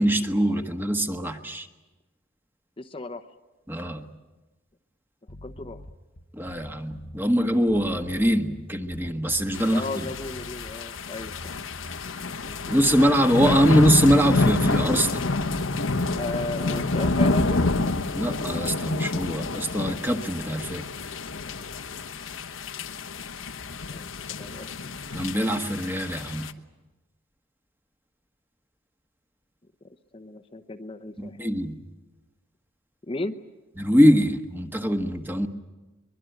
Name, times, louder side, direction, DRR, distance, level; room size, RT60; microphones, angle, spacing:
voice 1, 0.0-1.7 3.7-4.1 6.3-10.1 12.7-15.2 18.1-20.9 25.1-26.5 31.2-31.8 33.8-35.5, equal, 10° right, 5 dB, 1.4 m, -23 dB
voice 2, 2.8-3.3 5.4-5.8 9.5-11.5 12.4-12.8 16.2-17.6 23.9-24.9 30.1-31.4 33.1-33.4, left 2 dB, 25° left, 7 dB, 0.9 m, -35 dB
sound 1, 5.3-14.9, left 1 dB, 50° left, 1.2 m, -45 dB
sound 2, 9.5-26.5, left 3 dB, 90° left, 1.2 m, -28 dB
23.5 x 22.5 x 9.2 m, 1.1 s
head